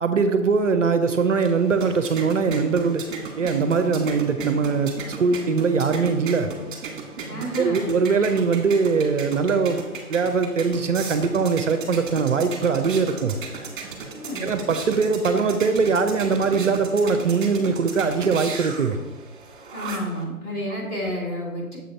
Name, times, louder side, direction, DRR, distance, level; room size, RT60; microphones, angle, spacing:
voice 1, 0.0-3.0 3.4-4.9 5.2-6.5 7.6-9.8 10.1-13.4 14.4-19.0, right 5 dB, 60° right, 8 dB, 0.5 m, -21 dB
sound 1, 1.1-20.2, right 4 dB, 35° right, 1.3 m, -36 dB
voice 2, 7.3-8.0 14.1-14.5 19.7-21.8, equal, 15° left, -5 dB, 1.2 m, -30 dB
7.0 x 3.8 x 4.4 m, 1.2 s
figure-of-eight pair, 135°, 44 cm